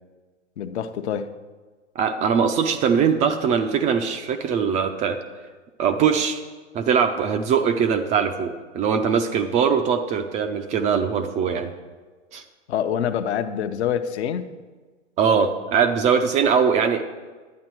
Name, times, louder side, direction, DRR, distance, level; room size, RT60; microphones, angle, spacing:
voice 1, 0.6-1.3 12.7-14.5, left 9 dB, 60° left, 9 dB, 0.8 m, -26 dB
voice 2, 2.0-5.2 5.8-6.4 6.7-11.7 12.3-12.4 15.2-17.0, right 6 dB, 20° right, 7 dB, 0.4 m, -21 dB
11.5 x 8.7 x 4.5 m, 1.3 s
hypercardioid pair, 115°, 37 cm